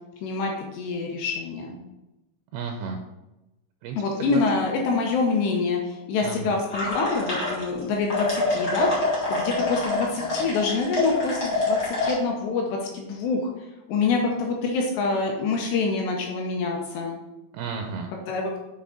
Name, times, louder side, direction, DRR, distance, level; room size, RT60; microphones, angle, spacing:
voice 1, 0.2-1.8 4.0-13.5 13.9-17.2 18.3-18.5, left 4 dB, 75° left, 0 dB, 2.7 m, -26 dB
voice 2, 2.5-3.0 3.8-4.4 6.2-6.6 17.5-18.1, right 6 dB, 80° right, 3 dB, 2.7 m, -33 dB
sound 1, 6.7-7.8 8.1-12.1, left 2 dB, 40° left, 1.4 m, -26 dB
7.0 x 5.8 x 3.8 m, 0.99 s
omnidirectional pair, 5.5 m